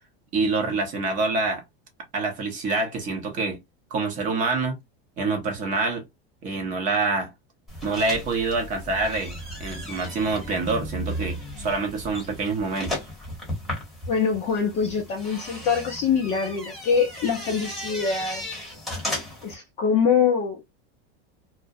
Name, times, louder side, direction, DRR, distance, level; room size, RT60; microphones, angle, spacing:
voice 1, 0.3-1.6 2.1-3.6 3.9-4.8 5.2-6.0 6.4-7.3 7.8-13.0, right 3 dB, 25° right, 0.6 m, -26 dB
sound 1, 7.7-19.5, left 1 dB, ahead, 0.8 m, -35 dB
voice 2, 14.1-18.4 19.4-20.6, left 6 dB, 25° left, 0.4 m, -24 dB
2.4 x 2.0 x 2.5 m
supercardioid pair, 170°, 31 cm